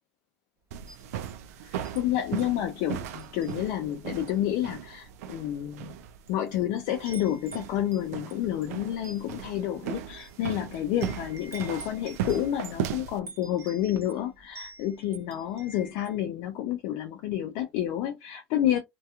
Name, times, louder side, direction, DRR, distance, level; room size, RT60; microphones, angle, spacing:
sound 1, 0.7-13.2, right 10 dB, 80° right, 0.4 m, -38 dB
Wind chime, 0.9-2.0 2.4-2.6 3.2-3.9 4.2-4.5 5.3-5.4 6.0-6.5 6.7-16.2, right 3 dB, 35° right, 0.9 m, -48 dB
voice 1, 1.6-5.9 6.3-18.8, left 11 dB, 70° left, 0.4 m, -29 dB
2.7 x 2.3 x 2.3 m
hypercardioid pair, 80°, 8 cm